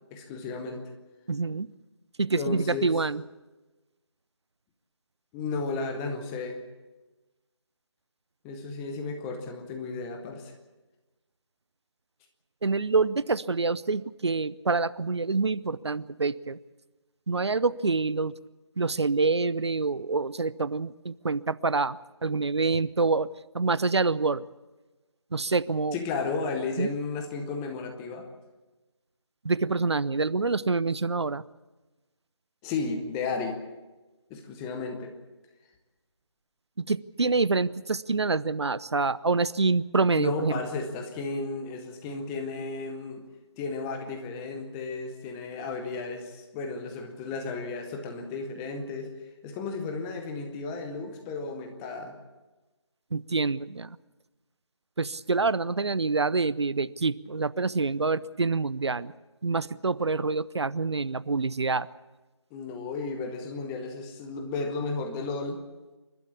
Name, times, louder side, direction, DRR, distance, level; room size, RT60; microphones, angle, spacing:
voice 1, 0.1-0.9 2.4-2.9 5.3-6.6 8.4-10.5 25.9-28.3 32.6-33.6 34.3-35.1 40.1-43.2 43.6-49.1 49.4-52.2 62.5-65.6, left 4 dB, 5° left, 5 dB, 0.7 m, -33 dB
voice 2, 1.3-1.7 2.2-3.2 12.6-16.6 17.3-18.3 18.8-24.5 25.3-26.0 26.8-26.9 29.4-31.4 36.8-40.5 53.1-54.0 55.0-59.1 59.4-61.9, right 3 dB, 65° right, 18 dB, 0.7 m, -26 dB
28.0 x 12.5 x 8.4 m, 1.1 s
figure-of-eight pair, 165°, 16 cm